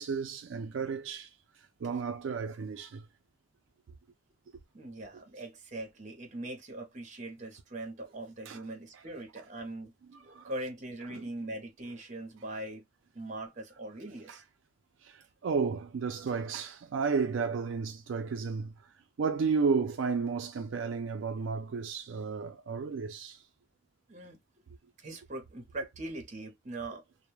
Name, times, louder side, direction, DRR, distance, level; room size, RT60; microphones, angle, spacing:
voice 1, 0.0-1.3 1.8-3.1 8.5-8.6 8.9-9.0 10.1-10.5 11.1-11.3 14.3-14.4 15.0-18.7 19.2-23.4, right 5 dB, 80° right, 0.4 m, -33 dB
voice 2, 4.7-9.9 10.2-12.8 13.1-14.4 24.1-24.4 25.0-27.0, right 2 dB, 40° right, 0.7 m, -41 dB
2.2 x 2.0 x 2.9 m
head